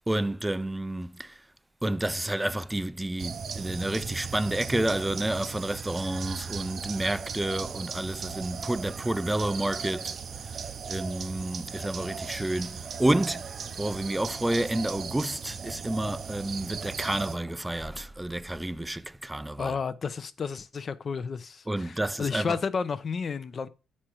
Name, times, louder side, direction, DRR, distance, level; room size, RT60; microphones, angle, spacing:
voice 1, 0.1-1.4 1.8-13.5 13.8-19.8 21.7-22.6, right 1 dB, 10° right, 0.4 m, -30 dB
sound 1, 3.2-17.4, right 6 dB, 55° right, 0.6 m, -37 dB
voice 2, 19.6-23.7, left 5 dB, 45° left, 0.7 m, -32 dB
8.8 x 4.4 x 4.8 m
cardioid pair, 90°, 0 cm